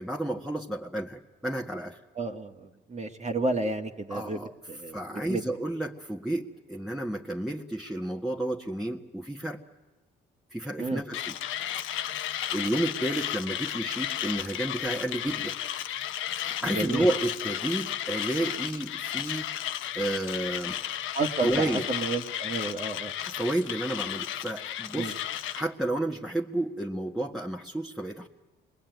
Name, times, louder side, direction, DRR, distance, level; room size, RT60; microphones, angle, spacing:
voice 1, 0.0-2.0 4.1-4.5 4.9-9.6 10.5-11.4 12.5-15.5 16.4-19.5 19.9-20.8 21.4-21.9 23.2-28.3, right 1 dB, ahead, -1 dB, 1.6 m, -31 dB
voice 2, 2.1-4.4 4.7-5.4 10.8-11.0 16.7-17.1 21.1-23.1 24.9-25.1, right 3 dB, 35° right, 3 dB, 1.8 m, -31 dB
Mechanisms, 11.1-25.7, left 11 dB, 85° left, 1.0 m, -33 dB
28.0 x 21.5 x 9.3 m, 1.3 s
cardioid pair, 90°, 20 cm